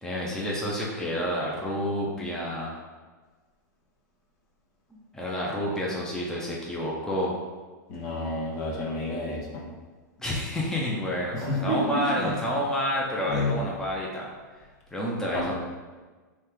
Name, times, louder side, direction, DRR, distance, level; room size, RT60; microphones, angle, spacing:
voice 1, 0.0-2.7 4.9-7.3 10.2-14.3 14.9-15.5, equal, 5° left, -4 dB, 0.8 m, -29 dB
voice 2, 7.9-9.6 11.3-12.3 13.3-13.5 15.3-15.5, left 1 dB, 55° left, -3 dB, 1.3 m, -30 dB
4.3 x 3.3 x 3.5 m, 1.3 s
hypercardioid pair, 120°, 10 cm